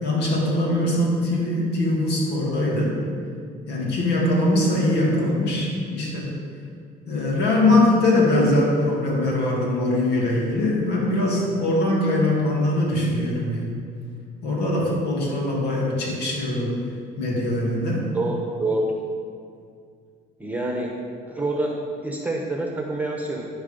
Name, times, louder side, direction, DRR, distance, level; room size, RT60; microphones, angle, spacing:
voice 1, 0.0-3.0 3.7-6.3 7.1-13.8 14.4-16.9 17.2-18.1, left 1 dB, 80° left, -3 dB, 2.6 m, -22 dB
voice 2, 18.1-18.9 20.4-21.0 21.3-23.4, right 2 dB, 10° right, 0 dB, 1.1 m, -27 dB
13.0 x 4.8 x 5.3 m, 2.2 s
cardioid pair, 110°, 17 cm